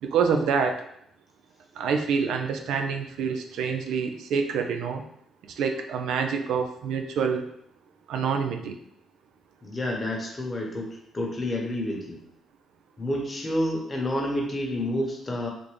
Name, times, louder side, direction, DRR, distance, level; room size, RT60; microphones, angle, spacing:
voice 1, 0.0-0.8 1.8-5.0 5.5-7.4 8.1-8.8, right 6 dB, 80° right, 5 dB, 0.4 m, -26 dB
voice 2, 9.6-12.2 13.0-15.5, left 1 dB, 30° left, 0 dB, 0.9 m, -29 dB
3.5 x 2.5 x 3.2 m, 0.72 s
cardioid pair, 90°, 0 cm